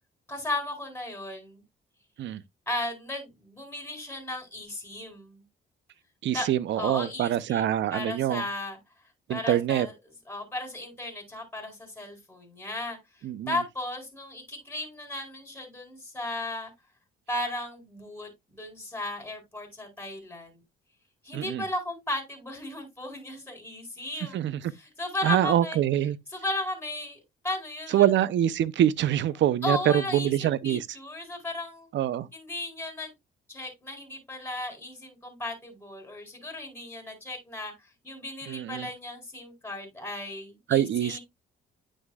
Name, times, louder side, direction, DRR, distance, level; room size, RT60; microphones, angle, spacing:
voice 1, 0.3-1.6 2.7-5.4 6.3-6.5 6.7-8.8 9.3-9.9 10.3-13.0 13.5-16.7 17.3-20.6 21.2-24.5 24.8-25.8 26.3-27.2 27.4-28.1 29.6-31.9 32.3-33.1 33.5-41.2, left 1 dB, 10° left, 4.1 m, -35 dB
voice 2, 6.2-8.4 9.3-9.9 13.2-13.6 21.3-21.6 24.3-24.6 25.2-26.2 27.9-30.9 31.9-32.3 38.5-38.9 40.7-41.2, right 11 dB, 65° right, 0.7 m, -25 dB
9.4 x 6.3 x 2.3 m
cardioid pair, 90°, 20 cm